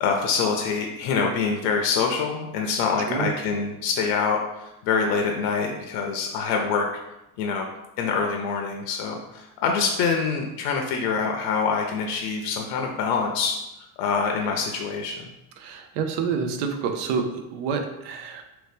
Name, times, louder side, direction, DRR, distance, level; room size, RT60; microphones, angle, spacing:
voice 1, 0.0-6.8 7.4-7.7 8.0-13.5 14.0-15.3, left 5 dB, 65° left, 2 dB, 0.5 m, -25 dB
voice 2, 15.6-18.4, right 5 dB, 85° right, 5 dB, 0.6 m, -28 dB
2.9 x 2.7 x 3.4 m, 0.90 s
cardioid pair, 160°, 44 cm